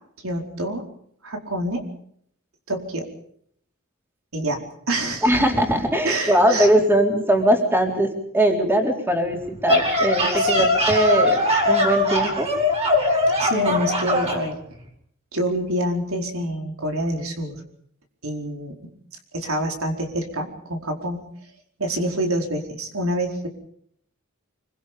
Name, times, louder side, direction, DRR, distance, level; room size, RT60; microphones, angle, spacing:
voice 1, 0.2-0.8 1.2-1.9 2.7-3.1 4.3-5.3 6.0-6.7 10.4-10.7 13.4-14.6 15.3-17.6 18.2-18.9 19.3-21.3 21.8-23.5, right 1 dB, 80° right, 3 dB, 4.7 m, -27 dB
voice 2, 5.2-12.5, right 1 dB, 10° right, 2 dB, 4.1 m, -20 dB
sound 1, 9.4-14.4, left 1 dB, 30° right, 7.6 m, -20 dB
26.5 x 24.0 x 5.3 m, 0.66 s
head